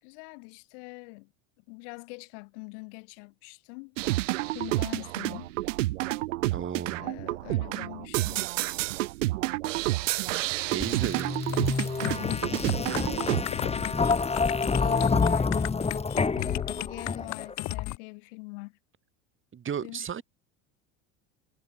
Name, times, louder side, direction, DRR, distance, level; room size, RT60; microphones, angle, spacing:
voice 1, 0.0-1.3 1.6-4.0 4.5-5.5 7.0-8.5 12.6-14.3 14.7-15.9 16.8-18.8 19.8-20.2, left 34 dB, 75° left, 5.6 m, -44 dB
sound 1, 4.0-13.4, right 18 dB, 90° right, 1.0 m, -29 dB
voice 2, 6.5-7.0 7.5-7.6 10.7-11.3 19.5-20.2, right 8 dB, 35° right, 4.4 m, -34 dB
sound 2, 10.8-17.5, left 4 dB, 15° left, 1.9 m, -28 dB
sound 3, 11.5-18.0, left 18 dB, 50° left, 0.9 m, -35 dB
supercardioid pair, 95°, 36 cm